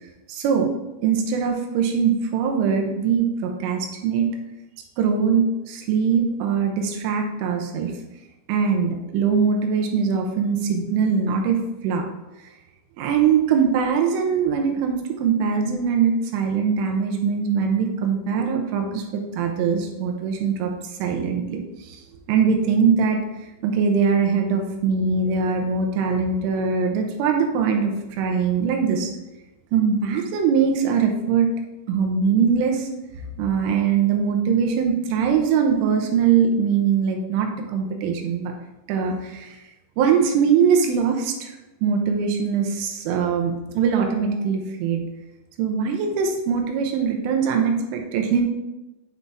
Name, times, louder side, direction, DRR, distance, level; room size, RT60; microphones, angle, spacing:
voice 1, 0.3-0.7 1.0-4.3 5.0-7.9 8.5-12.0 13.0-20.7 21.0-22.0 22.3-23.2 23.6-29.1 29.7-31.5 31.9-32.9 33.4-38.5 38.9-39.6 40.0-41.5 41.8-45.0 45.6-48.4, right 6 dB, 85° right, 2 dB, 3.4 m, -22 dB
9.6 x 4.1 x 3.5 m, 0.99 s
omnidirectional pair, 5.7 m